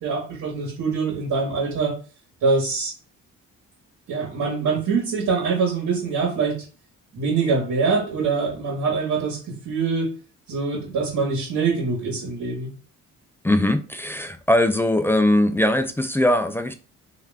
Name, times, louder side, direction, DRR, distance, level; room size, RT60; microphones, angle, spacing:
voice 1, 0.0-1.9 2.4-2.9 4.1-6.6 7.1-9.4 9.6-10.1 10.5-12.7, right 4 dB, 70° right, 1.9 m, -24 dB
voice 2, 13.4-16.7, left 1 dB, 10° left, 0.4 m, -20 dB
3.3 x 3.1 x 3.6 m
cardioid pair, 90°, 30 cm